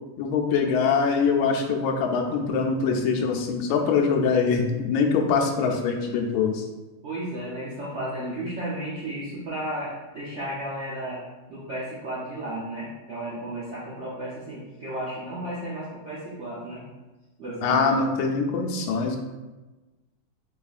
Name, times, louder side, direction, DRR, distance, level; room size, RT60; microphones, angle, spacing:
voice 1, 0.2-6.6 17.6-19.2, left 5 dB, 80° left, 2 dB, 1.4 m, -23 dB
voice 2, 7.0-11.2 11.5-16.8 17.4-17.9, right 1 dB, 75° right, -8 dB, 0.6 m, -33 dB
4.0 x 3.5 x 2.4 m, 1.1 s
omnidirectional pair, 2.2 m